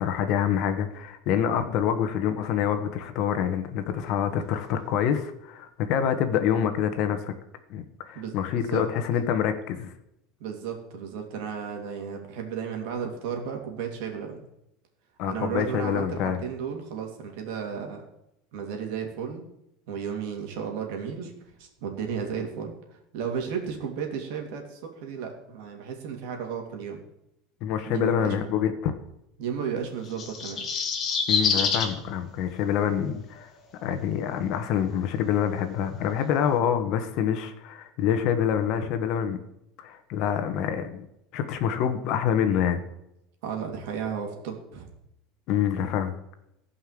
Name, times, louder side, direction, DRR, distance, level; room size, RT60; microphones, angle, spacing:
voice 1, 0.0-7.3 7.7-9.9 15.2-16.4 27.6-28.9 31.3-33.5 33.8-39.4 39.8-41.0 41.3-42.8 45.5-46.1, left 9 dB, 45° left, 8 dB, 1.3 m, -26 dB
voice 2, 8.1-8.8 10.4-14.4 15.3-18.0 18.5-19.4 19.9-21.3 21.6-27.0 27.9-28.3 29.4-30.7 43.4-44.9, right 7 dB, 65° right, 3 dB, 3.0 m, -33 dB
sound 1, 30.1-31.9 33.3-33.4, left 5 dB, 25° left, 1.7 m, -26 dB
15.5 x 5.7 x 7.7 m, 0.83 s
cardioid pair, 170°, 0 cm